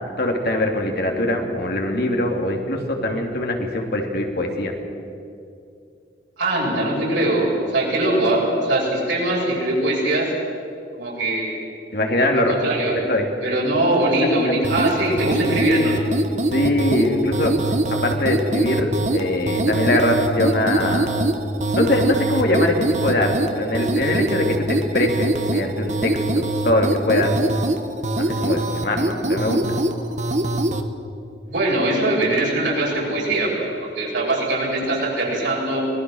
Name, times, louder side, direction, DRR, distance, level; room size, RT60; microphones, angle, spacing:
voice 1, 0.2-4.7 11.9-12.5 13.1-13.6 16.5-17.5 17.9-21.1 21.7-27.3 28.2-29.6, left 1 dB, 60° left, 2 dB, 2.9 m, -22 dB
voice 2, 6.4-10.3 11.0-11.5 12.5-13.0 13.4-16.0 31.5-35.9, right 1 dB, 90° right, -3 dB, 7.0 m, -21 dB
sound 1, 14.6-30.9, right 1 dB, 40° right, 1.2 m, -23 dB
25.0 x 19.0 x 6.5 m, 2.5 s
head